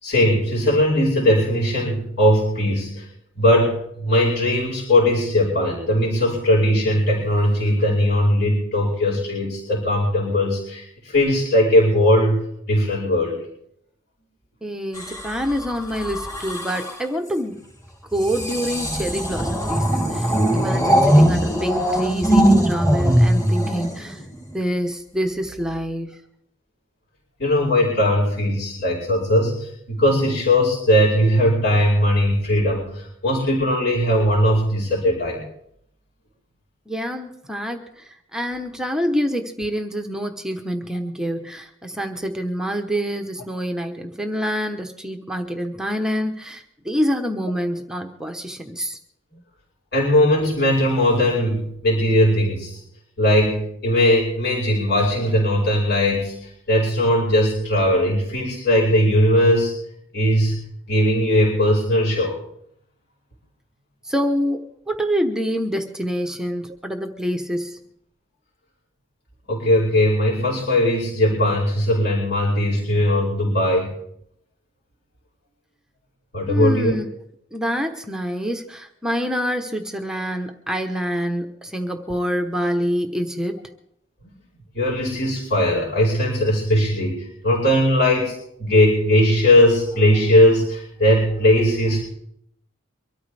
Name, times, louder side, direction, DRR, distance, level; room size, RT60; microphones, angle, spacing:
voice 1, 0.0-3.1 3.3-13.4 27.4-35.5 49.9-52.8 53.2-59.8 60.1-62.4 69.5-73.9 76.3-76.9 84.7-92.0, left 1 dB, 55° left, -4 dB, 5.0 m, -19 dB
voice 2, 14.6-17.6 18.1-24.2 24.5-26.2 36.9-49.0 64.0-67.8 76.5-77.1 77.5-83.7, equal, 5° right, 4 dB, 0.9 m, -26 dB
sound 1, 14.9-17.1 18.1-24.5 25.5-25.8, equal, 20° left, 3.0 m, -20 dB
24.0 x 13.5 x 3.4 m, 0.71 s
head